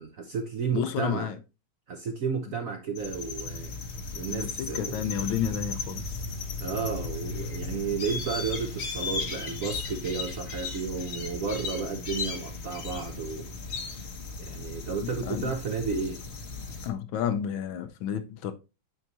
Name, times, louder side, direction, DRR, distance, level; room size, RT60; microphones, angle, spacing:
voice 1, 0.0-1.3 1.9-3.7 4.1-5.0 6.6-13.5 14.4-16.2, right 5 dB, 65° right, 0.8 m, -32 dB
voice 2, 0.7-1.4 4.3-6.1 15.2-15.5 16.8-18.5, left 9 dB, 85° left, 1.5 m, -31 dB
sound 1, 2.9-16.9, left 3 dB, 50° left, 0.8 m, -36 dB
8.9 x 3.9 x 2.9 m
omnidirectional pair, 2.2 m